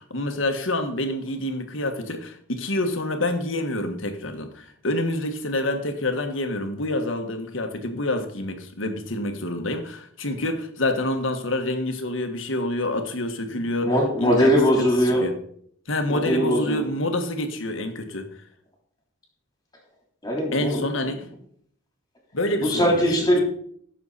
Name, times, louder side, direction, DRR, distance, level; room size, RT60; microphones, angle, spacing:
voice 1, 0.0-13.9 14.2-14.5 14.8-14.9 15.2-15.3 15.9-18.3 20.5-21.2 22.3-23.3, left 1 dB, 75° left, 1.6 m, -27 dB
voice 2, 13.8-15.3 16.1-16.8 20.2-20.8 22.6-23.4, equal, 20° left, 3.5 m, -21 dB
15.0 x 6.9 x 4.2 m
head